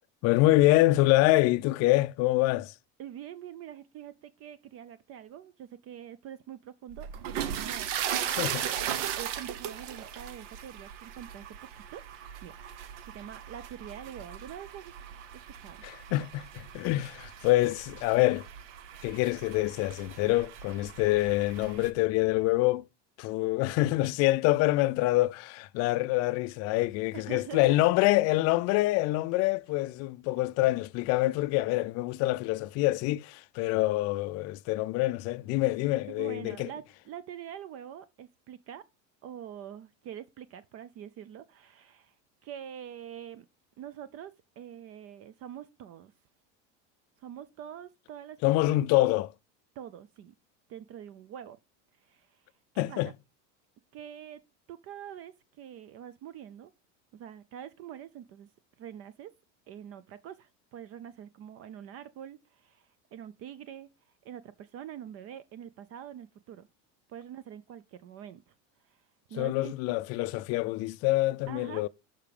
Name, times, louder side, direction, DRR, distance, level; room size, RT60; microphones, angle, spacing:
voice 1, 0.2-2.7 8.2-8.6 15.8-18.5 19.0-22.8 23.2-36.7 48.4-49.3 52.8-53.1 69.4-71.9, left 18 dB, 45° left, 0.4 m, -26 dB
voice 2, 3.0-8.8 9.2-11.5 11.7-12.0 12.4-12.5 13.1-14.9 15.3-15.8 27.1-27.8 36.1-38.8 39.2-42.2 42.4-43.5 43.8-46.1 47.2-48.4 48.6-48.8 49.8-50.3 50.7-51.6 52.0-52.5 52.7-53.1 53.9-54.4 54.7-56.7 57.1-58.5 58.8-59.3 59.7-63.9 64.2-66.7 67.1-68.5 68.8-69.9 71.5-71.9, right 10 dB, 40° right, 0.5 m, -45 dB
sound 1, 6.9-21.9, right 9 dB, 80° right, 1.0 m, -38 dB
6.5 x 5.9 x 5.2 m
supercardioid pair, 135°, 36 cm